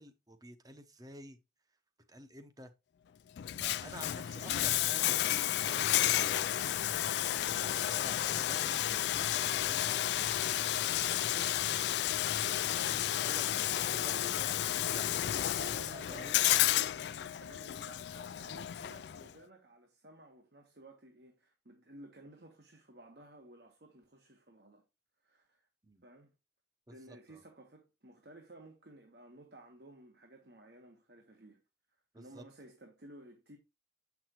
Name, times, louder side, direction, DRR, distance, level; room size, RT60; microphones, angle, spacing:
voice 1, 0.0-1.4 2.1-2.7 3.6-6.6 7.1-16.5 25.8-26.0 26.9-27.4 32.1-32.4, right 1 dB, 20° right, 0.8 m, -52 dB
Bathtub (filling or washing), 3.4-19.3, left 12 dB, 70° left, 0.3 m, -32 dB
voice 2, 15.5-24.8 25.2-25.7 26.0-26.3 26.9-31.6 32.2-33.6, right 1 dB, 65° right, 1.3 m, -55 dB
7.6 x 6.0 x 2.9 m
head